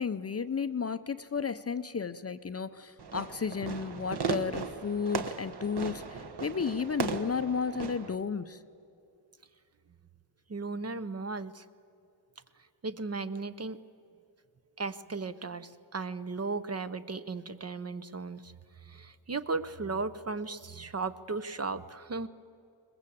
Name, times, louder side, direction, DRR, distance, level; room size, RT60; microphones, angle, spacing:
voice 1, 0.0-8.6, left 5 dB, 30° left, 12 dB, 0.6 m, -33 dB
Fireworks, 3.0-8.1, right 6 dB, 55° right, 1.3 m, -37 dB
voice 2, 10.5-11.7 12.8-13.8 14.8-18.5 18.8-22.3, right 3 dB, 30° right, 12 dB, 0.7 m, -36 dB
22.0 x 20.0 x 8.5 m, 2.5 s
wide cardioid pair, 110°, 47 cm